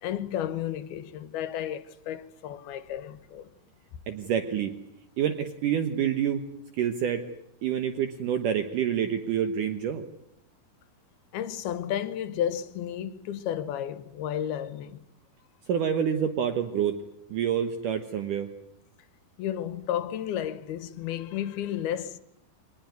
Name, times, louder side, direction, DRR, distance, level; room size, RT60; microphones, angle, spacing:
voice 1, 0.0-3.5 11.3-15.0 19.4-22.2, left 10 dB, 85° left, 3.1 m, -32 dB
voice 2, 4.1-4.7 5.2-6.4 6.7-7.2 7.6-10.0 15.7-17.0 17.3-18.5, right 9 dB, 65° right, 2.6 m, -27 dB
24.5 x 20.0 x 9.5 m
omnidirectional pair, 4.4 m